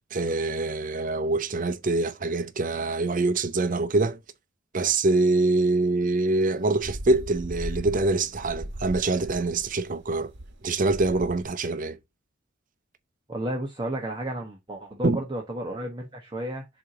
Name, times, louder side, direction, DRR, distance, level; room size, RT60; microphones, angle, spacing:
voice 1, 0.1-4.2 4.7-10.3 10.6-12.0 15.0-15.2, right 3 dB, 45° right, 0.7 m, -25 dB
sound 1, 6.3-11.5, right 1 dB, 65° right, 1.3 m, -38 dB
voice 2, 13.3-16.7, right 1 dB, 25° right, 1.1 m, -32 dB
7.1 x 2.9 x 4.8 m
head